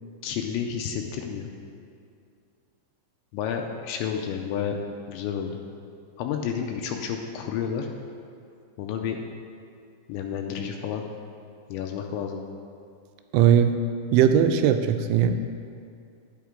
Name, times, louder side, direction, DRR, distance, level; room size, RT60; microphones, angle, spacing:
voice 1, 0.2-1.5 3.3-4.8 5.1-5.6 6.2-7.9 8.8-9.2 10.1-11.0 11.7-12.4, left 8 dB, 85° left, 3 dB, 2.8 m, -30 dB
voice 2, 13.3-13.8 14.1-15.3, right 9 dB, 90° right, 8 dB, 3.0 m, -19 dB
10.0 x 8.7 x 3.7 m, 2.4 s
omnidirectional pair, 5.3 m